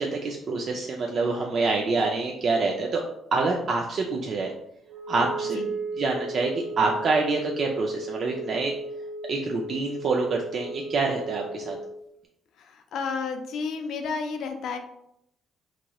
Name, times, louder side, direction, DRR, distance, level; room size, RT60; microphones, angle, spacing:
voice 1, 0.0-3.0 3.3-4.5 5.1-5.6 6.0-8.7 9.3-11.8, right 3 dB, 45° right, 0 dB, 0.3 m, -26 dB
Wind instrument woodwind instrument, 4.9-12.0, right 2 dB, 70° right, 0.7 m, -35 dB
voice 2, 12.6-14.8, left 5 dB, 65° left, 5 dB, 0.3 m, -31 dB
2.9 x 2.8 x 2.2 m, 0.78 s
cardioid pair, 135°, 0 cm